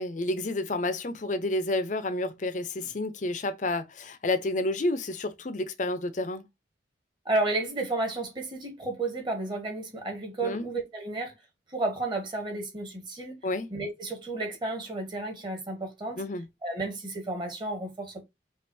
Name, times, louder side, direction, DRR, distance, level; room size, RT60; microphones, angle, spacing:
voice 1, 0.0-6.4 10.4-10.7 13.4-13.7 16.2-16.5, left 2 dB, 45° left, 0.6 m, -30 dB
voice 2, 7.2-11.3 11.7-13.4 13.7-16.2 16.6-18.2, right 2 dB, 25° right, 1.5 m, -32 dB
5.3 x 2.5 x 2.6 m
head